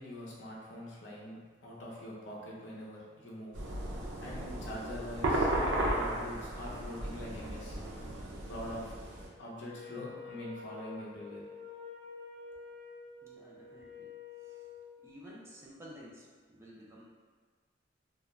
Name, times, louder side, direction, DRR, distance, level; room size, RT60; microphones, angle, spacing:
voice 1, 0.0-3.6 4.2-5.5 5.9-7.8 8.5-9.0 9.4-11.4, left 1 dB, 70° left, -5 dB, 0.6 m, -44 dB
sound 1, 3.5-9.3, right 1 dB, 80° right, 0.4 m, -34 dB
Wind instrument woodwind instrument, 9.7-14.9, left 5 dB, 50° right, 1.0 m, -48 dB
voice 2, 13.2-14.1 14.4-14.7 15.0-17.1, equal, 15° right, -5 dB, 0.3 m, -52 dB
2.3 x 2.1 x 3.0 m, 1.5 s
head